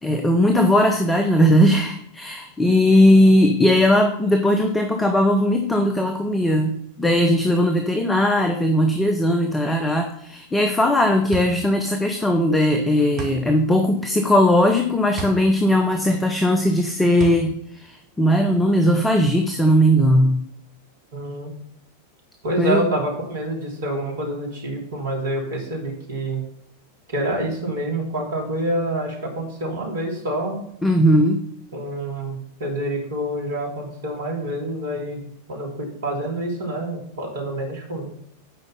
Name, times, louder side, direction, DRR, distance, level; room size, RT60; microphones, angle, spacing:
voice 1, 0.0-20.4 22.6-22.9 30.8-31.4, equal, 10° left, 5 dB, 0.9 m, -18 dB
sound 1, 10.7-18.8, right 2 dB, 35° right, 2.3 m, -36 dB
voice 2, 21.1-21.5 22.4-26.4 27.1-30.6 31.7-38.1, right 1 dB, 60° right, -1 dB, 2.9 m, -27 dB
9.4 x 5.3 x 5.5 m, 0.72 s
figure-of-eight pair, 90°, 0 cm